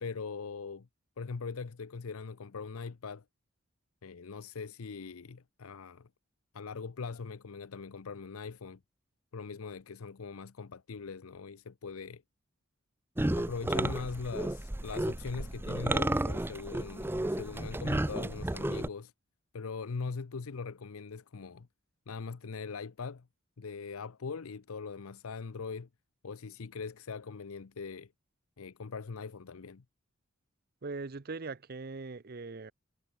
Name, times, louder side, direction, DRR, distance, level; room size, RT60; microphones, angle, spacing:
voice 1, 0.0-0.9 1.2-3.2 4.0-6.1 6.5-8.8 9.3-12.2 13.3-19.1 19.5-21.7 22.1-23.3 23.6-25.9 26.2-28.1 28.6-29.8, left 5 dB, 85° left, 0.7 m, -41 dB
sound 1, 13.2-18.9, right 1 dB, 10° right, 0.5 m, -32 dB
voice 2, 30.8-32.7, right 3 dB, 45° right, 0.7 m, -40 dB
head